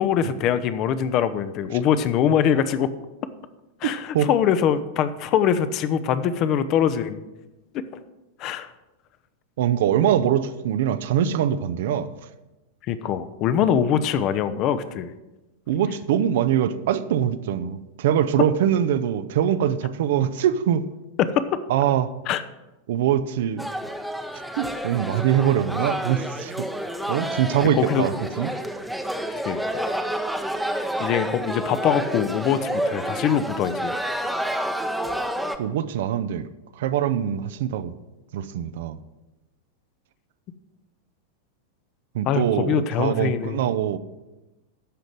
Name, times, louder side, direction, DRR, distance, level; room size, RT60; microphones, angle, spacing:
voice 1, 0.0-2.9 3.8-7.2 7.7-7.8 8.4-8.7 12.9-15.1 21.2-21.5 22.3-22.4 27.7-28.1 29.4-29.6 31.0-34.0 42.3-43.6, left 8 dB, 40° left, 12 dB, 0.7 m, -23 dB
voice 2, 3.8-4.3 9.6-12.1 15.7-20.8 21.7-22.1 22.9-23.7 24.6-26.7 27.1-28.5 35.6-36.5 36.8-37.9 38.3-39.0 42.1-44.0, right 10 dB, 55° right, 12 dB, 0.6 m, -23 dB
sound 1, 23.6-35.6, right 1 dB, ahead, 0.8 m, -29 dB
12.5 x 5.2 x 7.5 m, 1.0 s
figure-of-eight pair, 90°, 0 cm